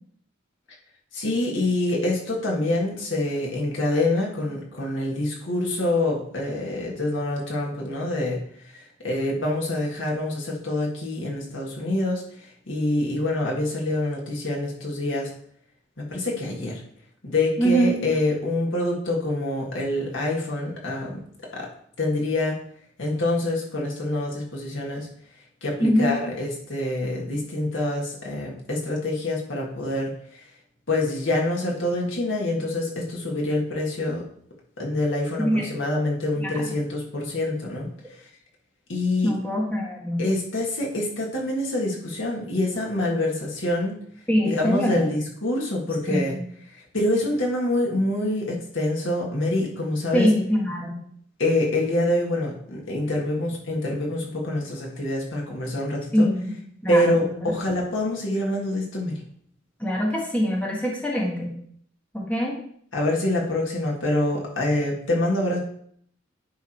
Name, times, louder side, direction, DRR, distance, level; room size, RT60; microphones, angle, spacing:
voice 1, 1.1-8.4 8.7-15.3 16.0-16.8 17.2-21.2 21.5-21.7 22.0-22.6 23.0-25.1 25.6-30.4 30.9-34.2 34.8-37.9 38.9-39.3 40.2-44.0 44.4-46.3 46.9-50.3 51.4-56.3 56.9-59.1 62.9-65.6, left 1 dB, 75° left, -2 dB, 1.9 m, -26 dB
voice 2, 17.6-18.0 25.8-26.2 35.4-35.7 36.3-36.7 39.2-40.2 44.3-45.1 46.1-46.4 50.1-51.0 56.1-56.6 56.8-57.6 59.8-61.6 62.1-62.6, equal, 10° left, -3 dB, 1.4 m, -23 dB
10.5 x 3.6 x 4.5 m, 0.65 s
head